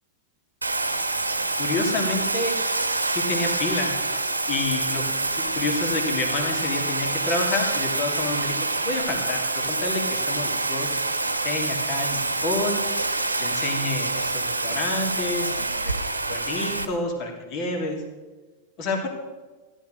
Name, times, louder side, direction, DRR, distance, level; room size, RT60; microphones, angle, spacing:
Bathtub (filling or washing), 0.6-16.8, right 2 dB, 80° right, 1.0 m, -26 dB
voice 1, 1.6-2.6 3.1-3.9 4.5-5.1 5.3-8.6 8.8-11.0 11.2-12.8 13.4-18.0 18.8-19.1, left 3 dB, 40° left, 3 dB, 2.7 m, -29 dB
14.5 x 11.0 x 6.5 m, 1.3 s
figure-of-eight pair, 90°, 0 cm